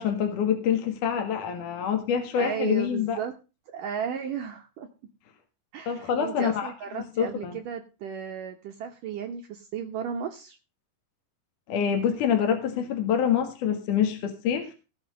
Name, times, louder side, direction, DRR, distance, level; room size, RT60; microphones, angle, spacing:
voice 1, 0.0-3.2 5.9-6.7 7.2-7.6 11.7-14.7, left 8 dB, 55° left, 5 dB, 2.6 m, -26 dB
voice 2, 2.3-3.3 3.7-4.9 5.7-10.6, right 8 dB, 80° right, 4 dB, 1.9 m, -34 dB
18.0 x 6.1 x 6.4 m, 0.32 s
omnidirectional pair, 5.5 m